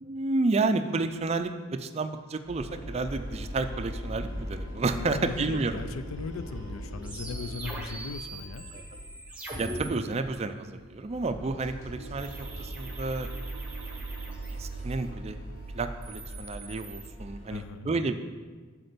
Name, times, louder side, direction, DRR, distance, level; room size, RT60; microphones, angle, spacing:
voice 1, 0.0-5.8 8.7-8.8 9.6-13.3 14.3-15.4 15.7-18.2, right 3 dB, 30° right, 9 dB, 0.4 m, -31 dB
sound 1, 2.4-9.2 9.5-9.8 10.2-10.3 10.7-17.5, right 1 dB, 70° left, 2.1 m, -40 dB
voice 2, 4.9-8.7 17.5-17.9, left 4 dB, 85° left, 12 dB, 0.5 m, -38 dB
sound 2, 7.0-9.9 12.2-15.0 15.8-17.1, right 2 dB, 5° right, 1.1 m, -42 dB
8.0 x 4.3 x 6.7 m, 1.4 s
head